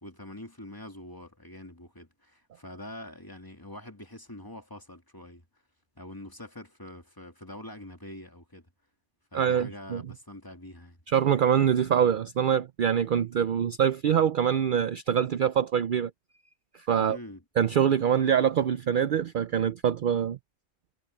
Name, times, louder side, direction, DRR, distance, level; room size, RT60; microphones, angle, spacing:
voice 1, 0.0-5.4 6.0-8.7 9.3-11.0 17.0-17.4, left 1 dB, 20° left, 2.5 m, -44 dB
voice 2, 9.3-10.0 11.1-16.1 16.9-17.2 17.6-20.4, right 8 dB, 55° right, 0.6 m, -24 dB
omnidirectional pair, 1.1 m